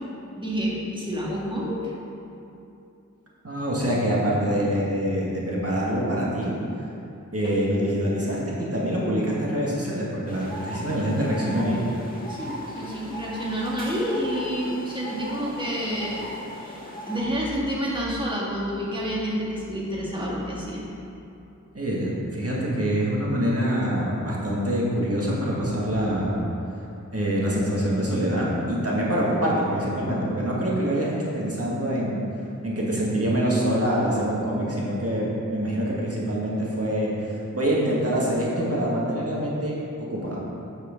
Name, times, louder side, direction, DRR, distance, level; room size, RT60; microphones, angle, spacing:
voice 1, 0.4-1.9 7.4-7.5 12.3-16.2 16.6-20.8, equal, 15° right, -5 dB, 1.7 m, -29 dB
voice 2, 3.4-6.5 7.3-11.8 21.7-26.4 27.1-32.2 32.6-39.7 40.0-40.4, equal, 50° right, -5 dB, 1.7 m, -25 dB
sound 1, 10.3-17.2, equal, 30° left, 1.5 m, -37 dB
8.6 x 6.3 x 5.1 m, 2.7 s
wide cardioid pair, 65°, 31 cm